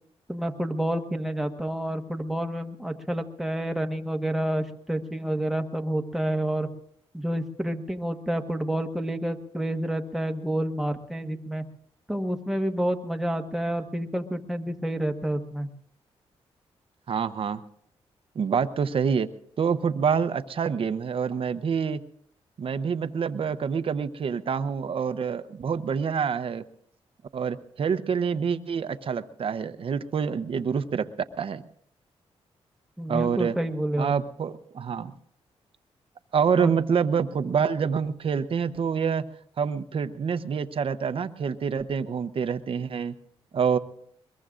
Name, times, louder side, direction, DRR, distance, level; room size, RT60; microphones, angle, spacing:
voice 1, 0.3-6.7 7.1-11.6 12.1-15.7 33.0-34.1 36.6-36.7, right 1 dB, ahead, 5 dB, 1.3 m, -29 dB
voice 2, 17.1-17.6 18.3-19.3 19.6-22.0 22.6-26.6 27.3-31.1 31.4-31.6 33.1-33.5 34.0-35.1 36.3-39.2 39.6-43.2 43.5-43.8, right 6 dB, 55° right, 12 dB, 0.8 m, -26 dB
22.5 x 21.5 x 2.5 m, 0.66 s
cardioid pair, 75°, 11 cm